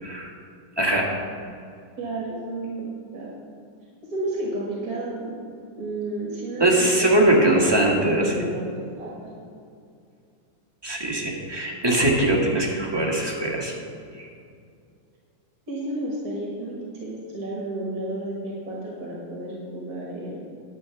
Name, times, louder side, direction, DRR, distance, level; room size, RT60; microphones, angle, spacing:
voice 1, 0.8-1.1 6.6-8.3 10.8-13.7 14.2-14.3, right 1 dB, 15° right, -3 dB, 1.5 m, -21 dB
voice 2, 2.0-2.9 3.1-3.3 4.0-5.4 5.8-7.2 7.7-9.3 15.7-20.4, right 1 dB, 50° right, -4 dB, 2.1 m, -31 dB
10.5 x 8.4 x 5.8 m, 2.4 s
omnidirectional pair, 2.1 m